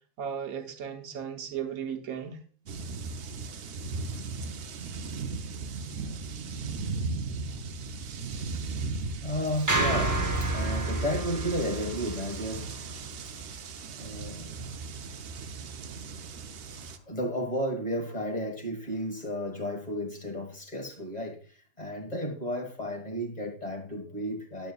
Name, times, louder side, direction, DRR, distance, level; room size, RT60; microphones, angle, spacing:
voice 1, 0.2-2.4 6.0-6.2, right 8 dB, 90° right, 1.4 m, -36 dB
sound 1, 2.7-17.0, right 4 dB, 60° right, 0.7 m, -37 dB
voice 2, 9.2-13.2 14.0-14.8 15.0-15.2 16.8-24.7, equal, 30° left, 1.6 m, -33 dB
sound 2, 9.7-14.0, right 2 dB, 15° right, 0.7 m, -30 dB
9.1 x 8.3 x 2.3 m
omnidirectional pair, 1.4 m